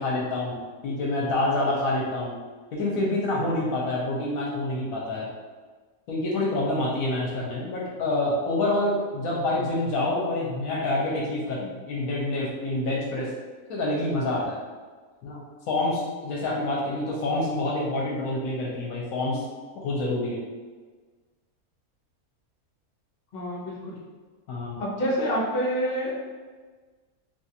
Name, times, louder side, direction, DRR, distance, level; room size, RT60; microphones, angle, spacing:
voice 1, 0.0-2.4 2.7-5.3 6.1-13.3 13.7-14.6 15.2-19.4 19.7-20.4 24.5-24.8, left 2 dB, 75° left, -4 dB, 1.0 m, -27 dB
voice 2, 23.3-23.9 24.8-26.1, equal, 45° left, -5 dB, 0.9 m, -27 dB
3.1 x 2.4 x 2.8 m, 1.4 s
omnidirectional pair, 1.5 m